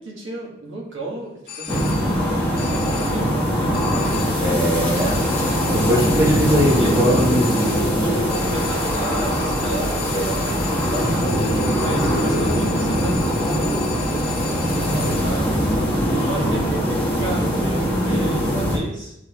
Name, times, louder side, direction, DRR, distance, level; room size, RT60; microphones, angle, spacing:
voice 1, 0.0-1.3 1.6-5.2 5.5-5.8 6.8-7.2 8.0-10.6 10.9-15.6 16.1-19.2, right 2 dB, 65° right, -3 dB, 2.1 m, -32 dB
sound 1, 1.5-2.3 2.6-3.4 3.7-4.6 4.9-15.5, left 7 dB, 50° left, 0.9 m, -36 dB
scroby-sands far away waves and wind deep atmosphere, 1.7-18.8, equal, 10° left, 1.4 m, -21 dB
voice 2, 4.4-5.2 5.7-7.8, equal, 15° right, -4 dB, 1.3 m, -20 dB
10.5 x 3.7 x 3.2 m, 0.81 s
head